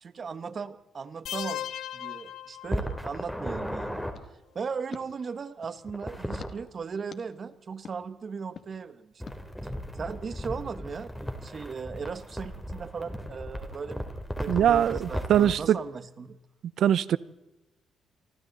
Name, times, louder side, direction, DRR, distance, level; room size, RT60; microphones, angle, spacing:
voice 1, 0.0-1.7 1.9-4.0 4.5-9.1 10.0-14.1 14.4-16.4, right 5 dB, 45° right, 13 dB, 1.4 m, -37 dB
sound 1, 1.3-3.2, left 11 dB, 80° left, 1.0 m, -37 dB
sound 2, 2.7-4.1 5.9-6.5 9.2-15.6, equal, 5° left, 3.5 m, -36 dB
sound 3, 4.1-5.8 6.4-6.5 7.1-7.2 7.8-8.0 8.5-8.7 9.3-9.4, left 6 dB, 50° left, 2.3 m, -47 dB
voice 2, 14.5-15.8 16.8-17.2, right 10 dB, 70° right, 18 dB, 0.9 m, -22 dB
27.5 x 24.5 x 4.1 m, 0.96 s
cardioid pair, 90°, 0 cm